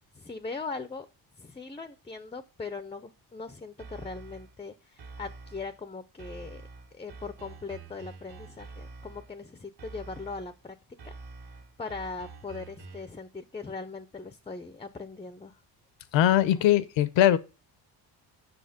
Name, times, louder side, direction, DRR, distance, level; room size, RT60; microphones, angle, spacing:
voice 1, 0.1-1.1 1.4-6.6 6.9-10.8 11.0-11.1 11.8-15.6, left 4 dB, 15° left, 0.5 m, -40 dB
sound 1, 3.8-4.6 5.0-5.8 6.2-9.4 9.8-10.6 11.0-13.2, right 3 dB, 55° right, 1.9 m, -46 dB
voice 2, 16.1-17.4, left 11 dB, 80° left, 0.8 m, -21 dB
8.0 x 6.2 x 5.0 m
cardioid pair, 100°, 45 cm